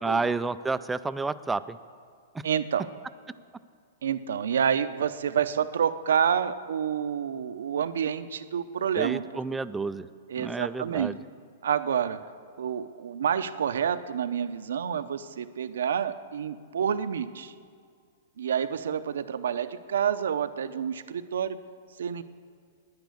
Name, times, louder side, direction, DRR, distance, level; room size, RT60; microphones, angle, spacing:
voice 1, 0.0-1.8 2.3-2.4 9.0-10.1 10.4-11.2, right 3 dB, 10° right, 13 dB, 0.4 m, -30 dB
voice 2, 2.4-2.9 4.0-9.2 10.3-11.1 11.6-12.2 12.6-17.5 18.4-21.6 22.0-22.2, right 8 dB, 85° right, 12 dB, 0.7 m, -28 dB
10.5 x 10.5 x 8.4 m, 2.2 s
hypercardioid pair, 145°, 0 cm